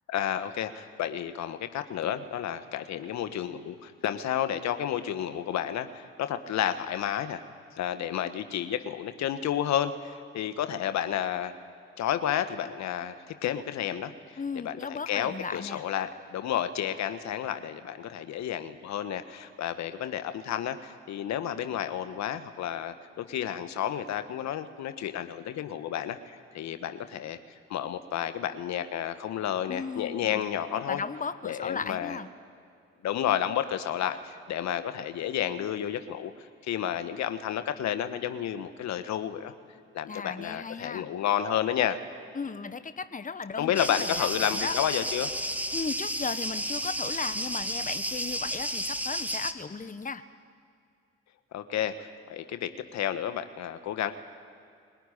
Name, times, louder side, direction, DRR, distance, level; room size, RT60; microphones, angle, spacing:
voice 1, 0.1-7.4 7.8-11.5 12.0-14.4 14.6-26.2 26.5-27.4 27.7-31.0 31.4-32.2 33.0-36.3 36.6-39.5 39.9-42.0 43.6-45.3 51.5-54.1, left 10 dB, 65° left, 10 dB, 1.3 m, -31 dB
voice 2, 14.4-15.8 29.7-30.4 30.9-32.3 40.1-41.0 42.3-44.3 44.5-44.7 45.7-50.2, left 5 dB, 25° left, 12 dB, 1.3 m, -36 dB
sound 1, 43.8-49.5, right 1 dB, 5° right, 1.9 m, -32 dB
24.0 x 18.0 x 10.0 m, 2.3 s
hypercardioid pair, 45°, 29 cm